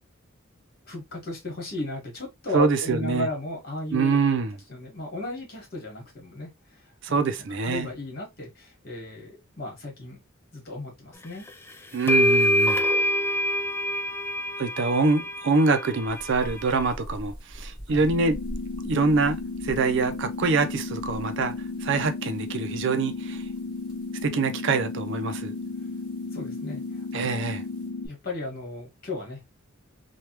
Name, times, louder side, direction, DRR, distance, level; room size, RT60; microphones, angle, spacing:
voice 1, 0.9-4.2 4.7-6.8 7.1-10.2 10.5-11.5 17.9-18.0 26.3-27.5 28.0-29.6, left 2 dB, 50° left, 1.6 m, -35 dB
voice 2, 2.5-3.3 3.9-4.5 7.0-7.9 11.9-12.8 14.6-18.4 18.8-21.5 21.8-23.5 24.2-25.6 27.1-27.6, right 4 dB, 65° right, 0.5 m, -25 dB
sound 1, 11.5-11.6 12.1-16.9, equal, 10° left, 0.4 m, -25 dB
sound 2, 16.1-27.9, equal, 5° right, 1.1 m, -45 dB
sound 3, 18.1-28.1, left 3 dB, 80° left, 0.6 m, -34 dB
3.2 x 2.3 x 2.9 m
head